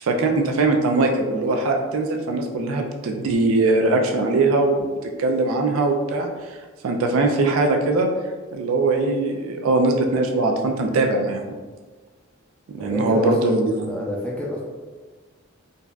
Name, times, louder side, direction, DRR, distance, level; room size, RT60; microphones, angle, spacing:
voice 1, 0.0-4.9 5.2-6.3 6.8-8.1 8.5-11.4 12.7-13.9, right 2 dB, 85° right, 3 dB, 0.4 m, -21 dB
voice 2, 12.8-14.6, left 1 dB, 5° left, -5 dB, 0.5 m, -29 dB
3.9 x 2.3 x 2.2 m, 1.4 s
head